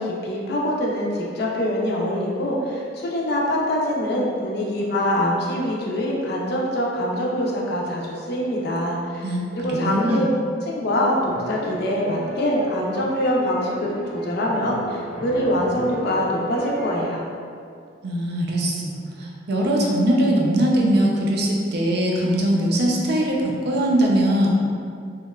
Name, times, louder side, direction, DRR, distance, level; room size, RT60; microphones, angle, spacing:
voice 1, 0.0-9.2 9.5-10.3 10.7-13.9 14.1-17.2, left 1 dB, 60° left, -3 dB, 0.4 m, -24 dB
voice 2, 9.7-10.3 18.0-24.5, right 1 dB, 65° right, -2 dB, 0.4 m, -21 dB
sound 1, 11.3-17.0, right 1 dB, 5° right, 0.8 m, -35 dB
2.7 x 2.1 x 2.2 m, 2.3 s
head